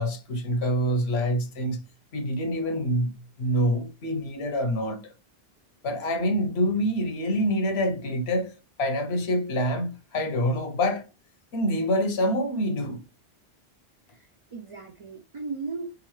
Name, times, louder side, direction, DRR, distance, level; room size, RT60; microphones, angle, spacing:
voice 1, 0.0-1.9 2.1-5.1 5.8-11.1 11.5-13.0, equal, 85° left, 1.1 m, -26 dB
voice 2, 14.1-15.9, right 4 dB, 50° right, 0.4 m, -37 dB
3.9 x 3.9 x 3.1 m
omnidirectional pair, 1.1 m